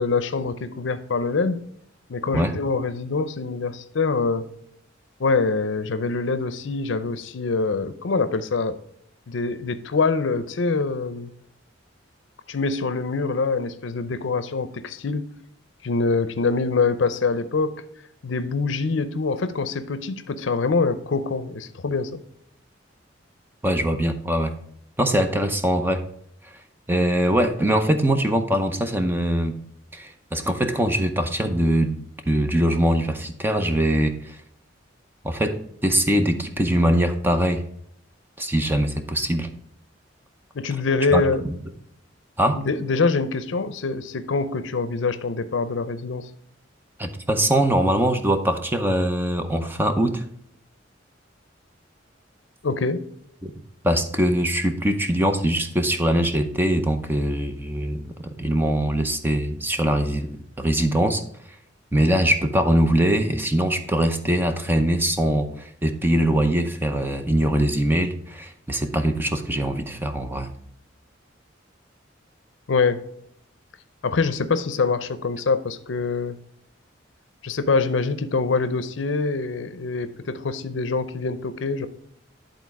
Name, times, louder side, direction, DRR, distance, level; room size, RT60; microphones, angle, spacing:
voice 1, 0.0-1.6 2.1-4.5 5.2-8.8 9.3-11.3 12.5-15.3 15.8-17.8 18.2-22.2 40.5-41.5 42.5-46.3 52.6-53.0 72.7-73.0 74.0-76.4 77.4-81.9, left 4 dB, 70° left, 12 dB, 0.6 m, -24 dB
voice 2, 23.6-24.5 25.0-26.0 26.9-29.6 29.9-34.4 35.2-37.6 38.4-39.5 41.1-41.2 41.5-41.6 42.4-42.6 47.0-50.2 53.4-53.5 53.8-60.3 60.6-61.2 61.9-70.5, right 1 dB, 10° right, 7 dB, 0.6 m, -22 dB
10.5 x 3.9 x 4.6 m, 0.69 s
head